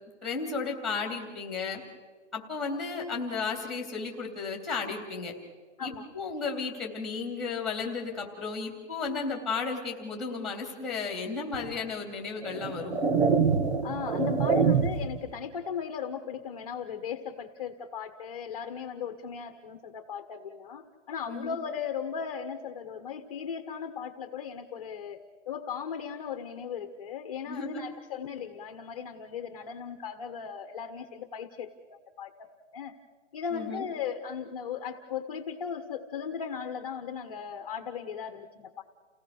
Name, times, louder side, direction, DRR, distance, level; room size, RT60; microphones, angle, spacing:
voice 1, 0.2-1.8 2.3-5.3 5.8-13.0 21.3-21.6 27.5-27.8 33.5-33.9, left 4 dB, ahead, 1 dB, 2.7 m, -34 dB
sound 1, 11.5-11.7 12.4-15.2, right 5 dB, 60° right, 2.4 m, -25 dB
voice 2, 13.8-32.9 33.3-38.8, left 7 dB, 30° left, 7 dB, 1.3 m, -37 dB
30.0 x 18.0 x 6.5 m, 1.4 s
hypercardioid pair, 175°, 37 cm